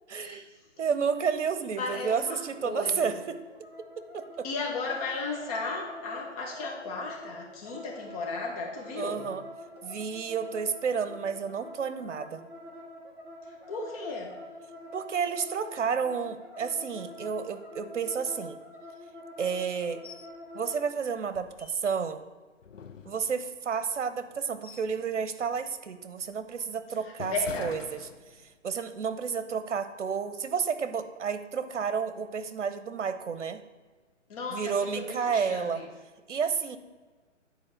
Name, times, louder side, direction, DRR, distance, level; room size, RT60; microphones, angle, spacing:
voice 1, 0.1-0.4 0.8-3.4 4.0-4.4 8.9-9.4 9.8-12.5 14.9-18.6 19.4-20.0 20.5-22.2 23.0-27.3 27.6-28.0 28.6-33.6 34.5-35.8 36.3-36.8, right 6 dB, 70° right, 11 dB, 1.0 m, -31 dB
voice 2, 1.8-3.1 4.4-9.3 13.7-14.3 27.3-28.0 34.3-35.8, left 3 dB, 30° left, -1 dB, 2.1 m, -35 dB
sound 1, 2.2-20.8, left 1 dB, 5° right, 0.7 m, -46 dB
sound 2, 20.0-20.3 20.7-20.8 21.3-22.1 22.6-23.6 24.2-25.0 25.4-25.7 26.2-28.7 29.0-29.2, left 6 dB, 80° left, 0.8 m, -46 dB
9.6 x 4.6 x 6.5 m, 1.4 s
hypercardioid pair, 145°, 37 cm